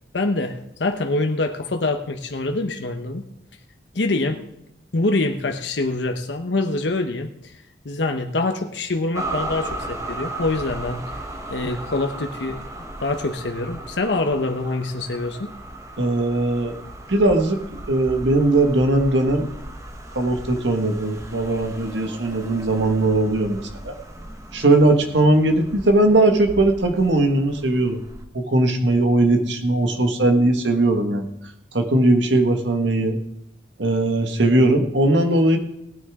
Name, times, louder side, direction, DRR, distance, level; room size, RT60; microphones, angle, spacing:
voice 1, 0.1-3.2 3.9-4.4 4.9-7.5 7.8-11.0 11.5-12.6 13.0-15.5, left 2 dB, 80° left, 4 dB, 1.0 m, -25 dB
sound 1, 9.1-28.2, right 1 dB, 15° right, 1.2 m, -36 dB
voice 2, 16.0-16.8 17.1-17.6 17.9-19.5 20.1-23.6 23.8-23.9 24.5-28.0 28.3-31.3 31.7-33.2 33.8-35.6, right 2 dB, 90° right, 5 dB, 1.6 m, -19 dB
18.5 x 9.5 x 3.7 m, 0.80 s
head